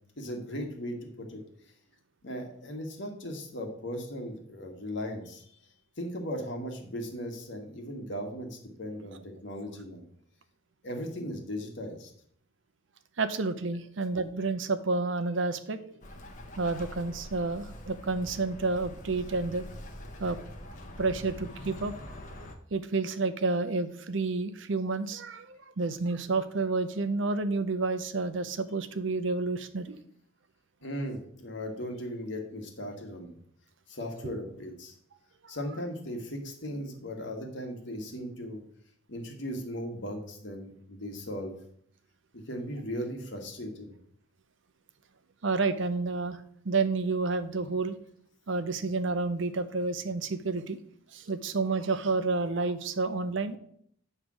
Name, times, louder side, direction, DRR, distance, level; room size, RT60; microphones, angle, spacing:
voice 1, 0.2-1.4 2.2-5.4 6.0-10.0 10.8-12.1 30.8-33.4 33.9-34.9 35.5-38.6 39.1-41.5 42.3-43.9, equal, 60° left, 2 dB, 1.5 m, -37 dB
voice 2, 13.2-15.8 16.6-19.6 20.2-20.4 20.6-21.9 22.7-30.0 34.2-34.3 45.4-48.0 48.5-50.8 51.1-53.6, right 3 dB, 65° right, 11 dB, 0.6 m, -30 dB
Bird, 16.0-22.5, left 1 dB, 40° left, 0.9 m, -44 dB
8.9 x 3.3 x 6.2 m, 0.66 s
head